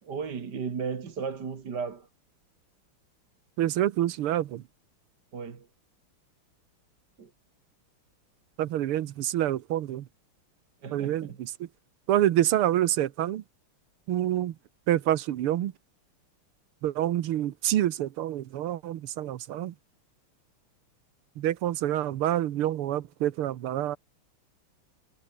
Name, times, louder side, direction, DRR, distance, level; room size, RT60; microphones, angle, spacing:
voice 1, 0.0-2.1 5.3-5.7 7.2-7.3 10.8-11.4, right 5 dB, 50° right, 2.5 m, -35 dB
voice 2, 3.6-4.6 8.6-10.1 10.9-11.5 12.1-13.4 14.1-14.6 14.9-15.7 16.8-19.7 21.4-24.0, right 12 dB, 80° right, 1.9 m, -27 dB
omnidirectional pair, 2.4 m